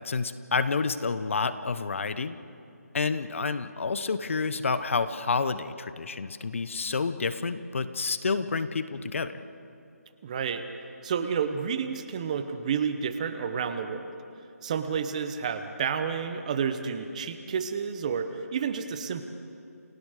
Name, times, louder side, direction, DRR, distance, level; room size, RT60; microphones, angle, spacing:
voice 1, 0.0-2.4 2.9-9.4, left 4 dB, 50° left, 12 dB, 1.0 m, -29 dB
voice 2, 10.2-10.6 11.0-14.1 14.6-19.2, right 6 dB, 25° right, 10 dB, 1.0 m, -30 dB
29.5 x 17.5 x 6.7 m, 2.6 s
figure-of-eight pair, 160°, 9 cm